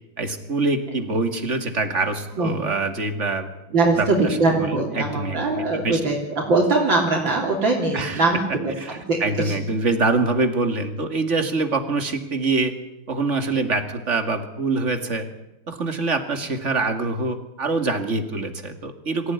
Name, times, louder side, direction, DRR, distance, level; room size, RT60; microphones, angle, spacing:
voice 1, 0.2-3.5 4.0-6.0 7.9-8.2 8.5-12.7 13.1-15.3 15.7-19.3, right 3 dB, 35° right, 7 dB, 2.5 m, -25 dB
voice 2, 3.7-8.7 9.1-9.2 9.4-9.5, right 3 dB, 65° right, -1 dB, 4.0 m, -21 dB
25.0 x 16.0 x 9.8 m, 0.95 s
omnidirectional pair, 2.2 m